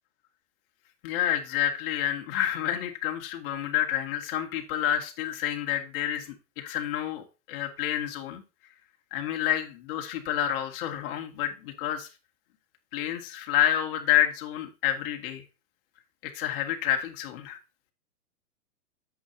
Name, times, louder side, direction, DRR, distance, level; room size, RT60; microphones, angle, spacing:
voice 1, 1.0-8.4 9.1-12.1 12.9-15.4 16.2-17.6, left 11 dB, 40° left, 3 dB, 2.3 m, -29 dB
10.5 x 7.8 x 2.8 m, 0.30 s
hypercardioid pair, 155°, 45 cm